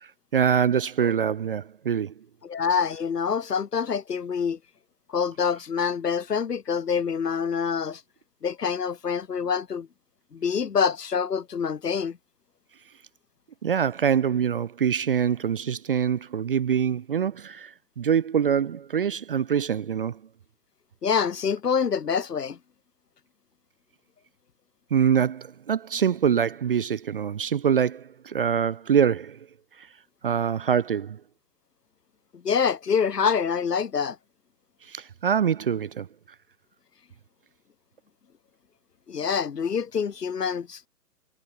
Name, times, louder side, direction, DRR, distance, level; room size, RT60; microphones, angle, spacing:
voice 1, 0.0-2.1 13.6-20.2 24.9-29.5 29.8-29.9 30.2-31.2 34.8-36.1, right 8 dB, 35° right, 0.6 m, -24 dB
voice 2, 2.4-4.6 5.1-8.0 8.4-9.9 10.3-12.2 21.0-22.6 32.3-34.2 39.1-40.9, left 6 dB, 75° left, 3.6 m, -26 dB
hypercardioid pair, 150°, 47 cm